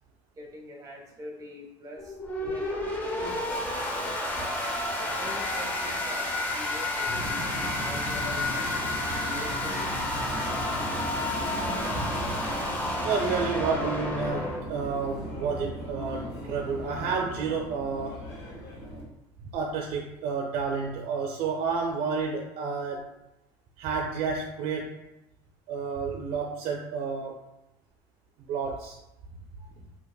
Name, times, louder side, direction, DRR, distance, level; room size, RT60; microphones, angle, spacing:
voice 1, 0.4-4.2 5.0-8.4 9.3-9.9 29.6-29.7, equal, 30° right, 0 dB, 1.0 m, -44 dB
sound 1, 2.0-14.6, left 1 dB, 15° left, 0.8 m, -31 dB
Subway metro underground, 7.0-19.0, equal, 90° left, 1.4 m, -37 dB
voice 2, 13.0-18.2 19.5-23.1 23.8-24.9 25.7-27.4 28.5-28.9, right 5 dB, 60° right, 1 dB, 0.5 m, -30 dB
4.5 x 2.8 x 2.3 m, 0.91 s
supercardioid pair, 110°, 12 cm